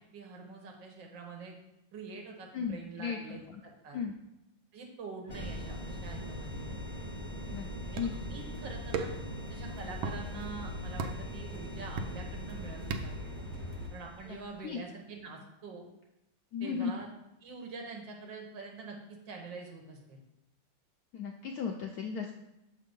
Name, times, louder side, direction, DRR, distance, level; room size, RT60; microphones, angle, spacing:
voice 1, 0.0-1.5 1.9-4.0 4.7-6.6 7.9-9.1 9.5-13.2 13.9-15.8 16.6-17.1 17.4-20.2, right 4 dB, 70° right, 1 dB, 1.8 m, -45 dB
voice 2, 2.5-3.4 3.9-4.2 7.5-7.7 8.0-8.1 14.2-14.4 14.6-14.8 16.5-17.0 21.1-22.3, left 6 dB, 75° left, 2 dB, 0.8 m, -35 dB
sound 1, 5.3-14.7, equal, 20° left, 0.5 m, -44 dB
sound 2, 5.3-13.9, equal, 45° right, 0.9 m, -43 dB
sound 3, 8.0-8.3 8.9-9.3 10.0-10.2 11.0-11.3 12.0-12.3 12.9-13.3, right 5 dB, 90° right, 1.4 m, -35 dB
6.7 x 3.7 x 5.2 m, 0.87 s
omnidirectional pair, 2.1 m